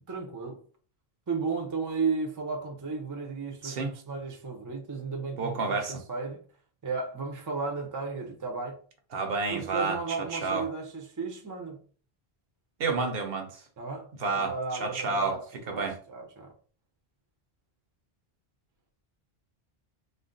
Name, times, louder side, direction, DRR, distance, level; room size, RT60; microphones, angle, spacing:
voice 1, 0.1-0.6 1.3-6.4 6.8-8.8 9.5-11.8 13.8-15.4 15.6-16.5, right 4 dB, 25° right, 0.4 m, -34 dB
voice 2, 5.4-6.0 9.1-10.7 12.8-13.6 14.2-14.5 14.8-15.4 15.7-16.0, right 4 dB, 70° right, 0.9 m, -30 dB
2.5 x 2.1 x 3.7 m
omnidirectional pair, 1.0 m